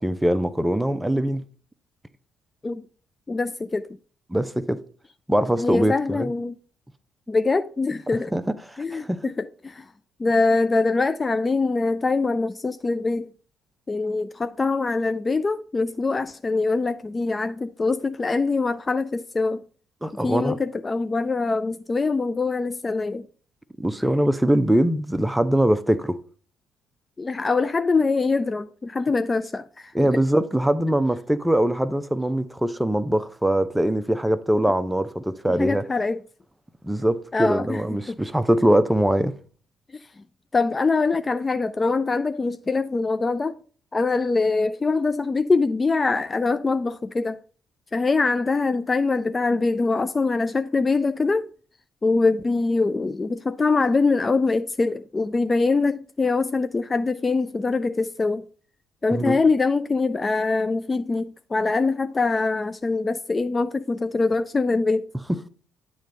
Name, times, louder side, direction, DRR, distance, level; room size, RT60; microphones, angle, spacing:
voice 1, 0.0-1.4 4.3-4.8 5.3-6.3 8.3-9.2 20.0-20.6 23.8-26.2 29.9-35.8 36.8-39.3 59.1-59.4 65.3-65.5, right 1 dB, 5° right, 0.6 m, -22 dB
voice 2, 3.3-3.8 5.6-6.6 7.3-8.3 8.8-9.8 10.2-13.3 13.9-19.6 20.2-23.3 27.2-29.6 30.0-30.1 35.6-36.2 37.3-37.8 38.1-38.2 40.5-43.5 43.9-47.4 47.9-51.5 52.0-58.5 59.0-65.1, left 3 dB, 30° left, 0.3 m, -23 dB
8.8 x 3.2 x 5.2 m
figure-of-eight pair, 45°, 0 cm